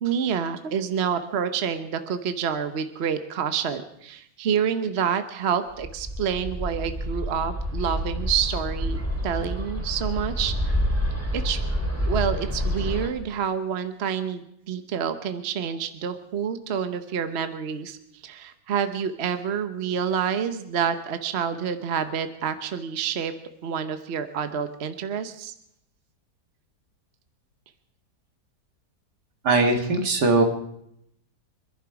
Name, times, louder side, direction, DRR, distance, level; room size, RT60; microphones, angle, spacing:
voice 1, 0.0-10.7 11.3-11.6 12.0-18.0 18.2-23.3 23.6-25.5, right 7 dB, 45° right, 9 dB, 1.1 m, -28 dB
Bird, 5.8-13.1, equal, 10° right, 2.3 m, -28 dB
voice 2, 29.4-30.4, right 3 dB, 75° right, 5 dB, 2.5 m, -20 dB
25.0 x 11.0 x 4.8 m, 0.76 s
omnidirectional pair, 1.8 m